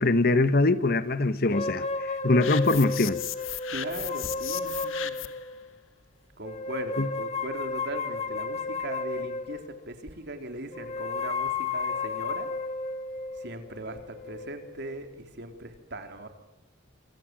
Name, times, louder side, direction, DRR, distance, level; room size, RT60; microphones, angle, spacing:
voice 1, 0.0-3.2 7.0-7.1, left 2 dB, 50° left, 13 dB, 1.2 m, -23 dB
sound 1, 1.5-5.7 6.4-9.9 10.7-15.1, left 4 dB, 35° left, 1.9 m, -33 dB
sound 2, 2.4-5.5, left 11 dB, 85° left, 1.5 m, -36 dB
voice 2, 3.7-5.2 6.4-12.5 13.4-16.3, right 2 dB, 55° right, 6 dB, 3.7 m, -39 dB
28.0 x 24.5 x 7.7 m, 0.91 s
head